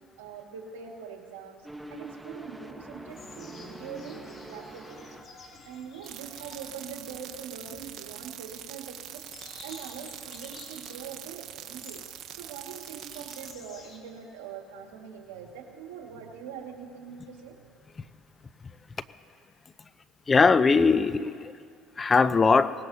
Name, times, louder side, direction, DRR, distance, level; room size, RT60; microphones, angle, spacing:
voice 1, 0.2-5.1 5.4-9.2 9.6-12.0 12.3-17.6, right 7 dB, 90° right, 1 dB, 1.8 m, -43 dB
sound 1, 1.6-5.3, right 1 dB, ahead, 1.0 m, -44 dB
amb - outdoor rooster cows, 3.1-14.0, left 3 dB, 45° left, 2.3 m, -51 dB
sound 2, 6.0-13.5, right 11 dB, 65° right, 0.7 m, -43 dB
voice 2, 20.3-21.5 22.0-22.7, left 4 dB, 30° left, 14 dB, 0.6 m, -20 dB
23.0 x 19.0 x 2.8 m, 2.3 s
supercardioid pair, 80°, 0 cm